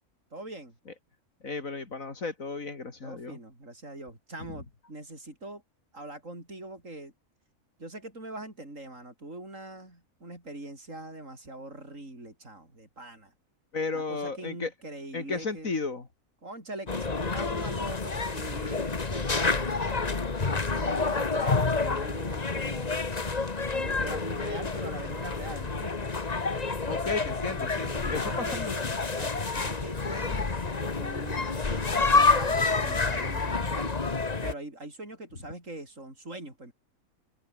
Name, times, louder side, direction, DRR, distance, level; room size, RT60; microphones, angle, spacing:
voice 1, 0.3-0.7 3.0-5.6 5.9-7.1 7.8-13.3 13.9-15.8 16.4-19.8 20.4-22.9 23.7-26.1 27.9-28.9 29.1-30.4 30.8-33.9 34.4-36.7, right 2 dB, 65° right, 7.6 m, -42 dB
voice 2, 1.4-3.4 13.7-14.7 15.1-16.1 26.9-28.7, left 4 dB, 75° left, 3.4 m, -34 dB
sound 1, 16.9-34.5, left 4 dB, 30° left, 1.5 m, -28 dB
omnidirectional pair, 1.4 m